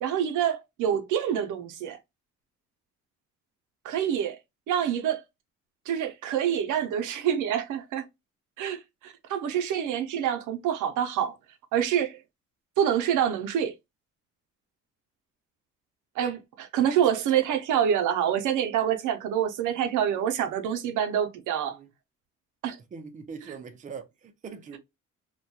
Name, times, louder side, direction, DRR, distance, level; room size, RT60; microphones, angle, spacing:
voice 1, 0.0-2.0 3.8-4.4 4.7-5.2 5.9-8.0 8.6-11.3 11.7-12.2 12.8-13.7 16.2-21.8 22.6-22.8, right 9 dB, 80° right, 0.5 m, -26 dB
voice 2, 22.9-24.8, right 5 dB, 25° right, 0.4 m, -42 dB
2.2 x 2.2 x 2.7 m
cardioid pair, 90°, 30 cm